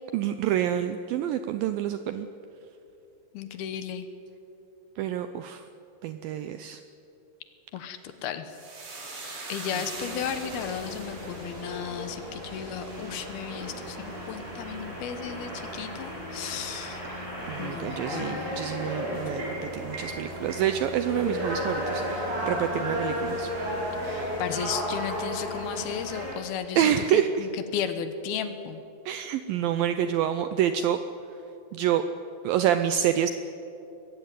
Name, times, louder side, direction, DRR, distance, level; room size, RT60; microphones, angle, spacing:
voice 1, 0.1-2.3 5.0-5.6 6.0-6.8 17.1-23.5 24.0-24.4 26.8-27.5 29.1-31.0 31.7-32.0 32.4-33.3, right 10 dB, 80° right, 9 dB, 2.1 m, -27 dB
voice 2, 3.3-4.1 7.7-8.5 9.5-17.0 17.6-18.5 24.1-28.8, left 8 dB, 70° left, 10 dB, 2.8 m, -34 dB
sound 1, 8.5-17.1 17.4-18.1 18.4-18.6, right 2 dB, 65° right, 6.1 m, -44 dB
sound 2, 9.9-26.3, equal, 50° right, 6.0 m, -34 dB
sound 3, 12.9-26.3, right 1 dB, 15° right, 7.6 m, -44 dB
22.0 x 15.0 x 9.4 m, 2.8 s
omnidirectional pair, 4.8 m